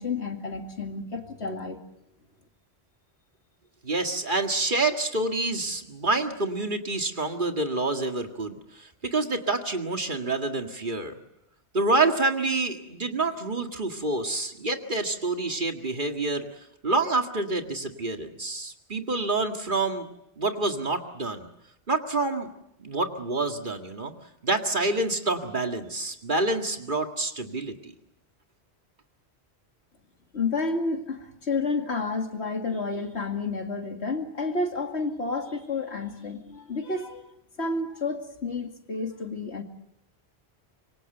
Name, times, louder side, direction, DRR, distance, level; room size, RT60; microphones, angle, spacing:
voice 1, 0.0-1.8 30.3-37.3 37.6-39.6, left 3 dB, 80° left, 5 dB, 2.7 m, -30 dB
voice 2, 3.8-11.2 11.7-16.5 16.8-20.1 20.4-21.5 21.9-22.5 22.8-24.1 24.4-27.9, right 2 dB, 50° right, 5 dB, 2.1 m, -27 dB
26.0 x 24.0 x 7.9 m, 0.82 s
omnidirectional pair, 1.1 m